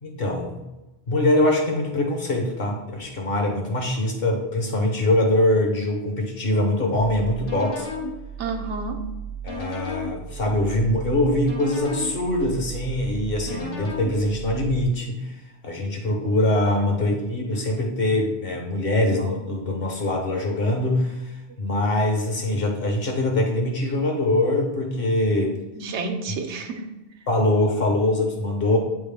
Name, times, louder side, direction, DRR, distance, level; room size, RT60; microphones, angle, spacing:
voice 1, 0.0-0.6 1.1-7.9 9.4-15.3 15.6-21.2 21.6-25.6 27.3-28.8, left 1 dB, 55° left, 1 dB, 1.2 m, -23 dB
sound 1, 7.0-14.8, right 2 dB, 85° left, 1.5 m, -34 dB
voice 2, 8.4-9.1 16.7-16.8 19.2-19.3 25.7-26.8, right 3 dB, 80° right, 5 dB, 1.0 m, -30 dB
8.5 x 3.6 x 3.4 m, 1.0 s
omnidirectional pair, 1.2 m